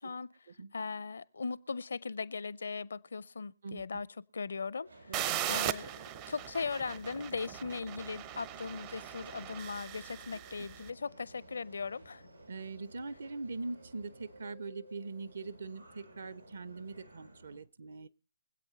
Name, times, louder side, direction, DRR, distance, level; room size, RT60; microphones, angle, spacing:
voice 1, 0.0-0.3 0.7-4.1 4.3-5.1 5.5-5.9 6.3-12.3, left 4 dB, 60° left, 0.6 m, -38 dB
voice 2, 3.6-4.0 5.1-5.6 10.3-10.4 12.5-18.1, right 3 dB, 55° right, 0.8 m, -42 dB
Subway metro underground, 4.8-17.6, right 2 dB, 85° right, 6.8 m, -56 dB
sound 1, 5.1-10.8, right 11 dB, 25° right, 0.6 m, -39 dB
24.5 x 8.3 x 4.0 m
figure-of-eight pair, 135°, 0 cm